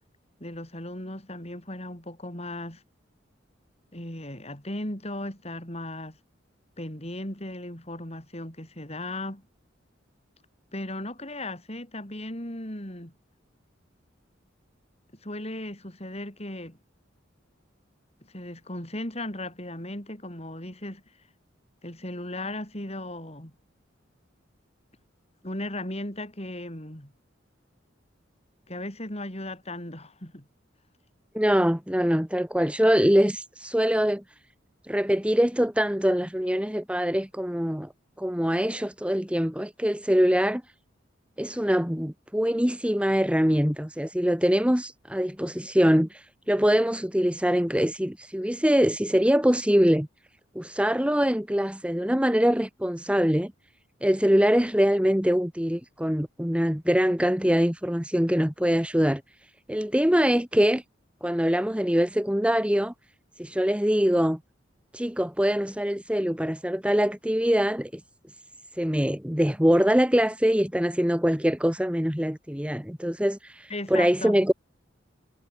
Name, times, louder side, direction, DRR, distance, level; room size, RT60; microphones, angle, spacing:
voice 1, 0.4-2.8 3.9-6.2 6.8-9.4 10.7-13.1 15.2-16.8 18.2-21.0 21.8-23.5 25.4-27.1 28.7-30.5 38.7-38.8 73.7-74.4, left 1 dB, 35° left, 7.8 m, -36 dB
voice 2, 31.3-34.2 34.9-37.9 38.2-40.6 41.4-50.1 50.6-53.5 54.0-59.2 59.7-60.8 61.2-62.9 63.4-64.4 64.9-68.0 68.8-74.5, equal, 5° right, 1.8 m, -23 dB
head